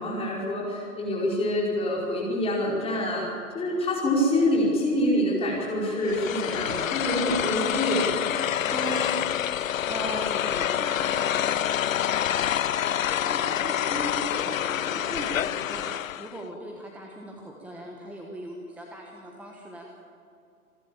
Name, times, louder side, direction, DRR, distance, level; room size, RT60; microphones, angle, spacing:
voice 1, 0.0-3.3 3.5-8.2, left 1 dB, 15° left, -4 dB, 5.0 m, -26 dB
sound 1, 6.0-16.4, left 10 dB, 65° left, 0.5 m, -27 dB
voice 2, 8.7-9.2 9.5-9.6 9.9-12.7 13.2-20.0, right 2 dB, 5° right, 0 dB, 1.3 m, -39 dB
27.5 x 11.5 x 8.8 m, 2.6 s
figure-of-eight pair, 115°, 44 cm